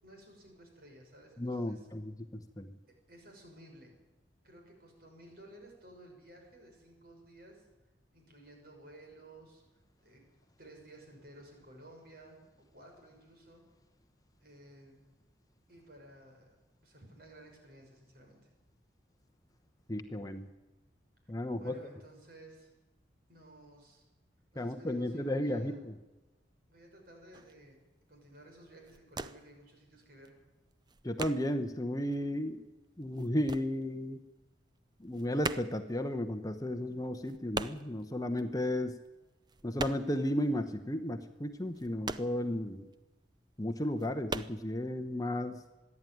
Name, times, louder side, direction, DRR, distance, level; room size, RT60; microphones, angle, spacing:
voice 1, 0.0-1.9 2.9-3.9 4.4-7.7 8.1-9.6 10.0-10.2 10.6-12.4 12.7-13.6 14.4-15.0 15.7-18.5 21.6-22.7 23.3-24.0 24.5-25.8 26.7-27.8 28.1-30.4, right 1 dB, 55° right, 2 dB, 6.1 m, -55 dB
voice 2, 1.4-2.8 19.9-20.5 21.3-21.8 24.6-25.9 31.0-32.6 33.0-34.2 35.0-39.0 39.6-42.9 43.6-45.6, left 1 dB, 20° left, 7 dB, 0.9 m, -34 dB
sound 1, 27.3-27.6 28.1-28.4 28.7-29.6 29.9-31.8 32.1-34.4 34.6-40.3 40.6-40.7 41.1-43.0 43.4-43.5 43.9-44.6, right 3 dB, 25° right, 0.6 m, -41 dB
26.0 x 11.0 x 9.4 m, 1.1 s
head